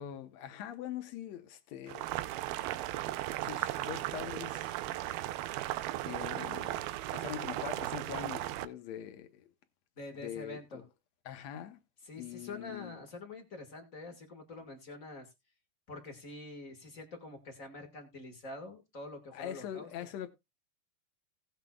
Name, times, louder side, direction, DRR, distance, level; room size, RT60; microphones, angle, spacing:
voice 1, 0.0-2.1 3.4-4.7 6.0-6.8 7.1-9.5 10.2-10.6 11.2-11.8 12.1-12.9 19.3-20.3, left 10 dB, 70° left, 1.7 m, -43 dB
Boiling, 1.9-8.7, right 15 dB, 90° right, 2.6 m, -36 dB
voice 2, 10.0-10.8 12.0-15.3 15.9-19.9, left 2 dB, 40° left, 1.1 m, -46 dB
18.0 x 7.3 x 2.3 m
omnidirectional pair, 4.3 m